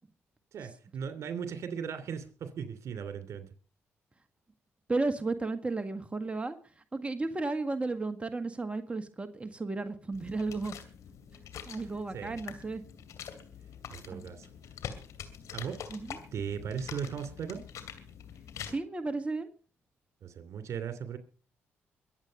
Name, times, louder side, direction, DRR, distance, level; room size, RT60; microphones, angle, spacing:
voice 1, 0.5-3.5 12.1-12.4 13.9-14.5 15.5-15.8 16.3-17.6 20.2-21.2, right 7 dB, 65° right, 2.8 m, -37 dB
voice 2, 4.9-6.6 6.9-10.8 11.7-12.8 14.1-14.2 15.9-16.1 18.6-19.5, right 3 dB, 20° right, 1.6 m, -33 dB
sound 1, 10.1-18.8, left 8 dB, 75° left, 2.5 m, -45 dB
23.0 x 8.4 x 5.3 m
supercardioid pair, 55°, 5 cm